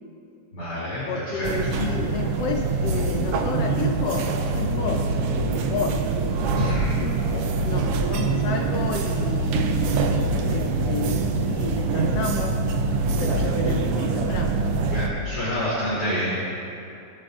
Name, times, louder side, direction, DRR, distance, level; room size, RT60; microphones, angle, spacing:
voice 1, 0.5-1.5 6.5-6.9 14.9-16.4, equal, 35° left, -11 dB, 3.4 m, -27 dB
voice 2, 1.1-5.0 5.5-6.0 7.0-10.2 10.5-12.6 13.0-14.6, left 5 dB, 70° left, 1 dB, 1.5 m, -31 dB
sound 1, 1.4-15.1, right 3 dB, 80° right, 1.3 m, -24 dB
20.0 x 8.6 x 2.5 m, 2.6 s
omnidirectional pair, 3.3 m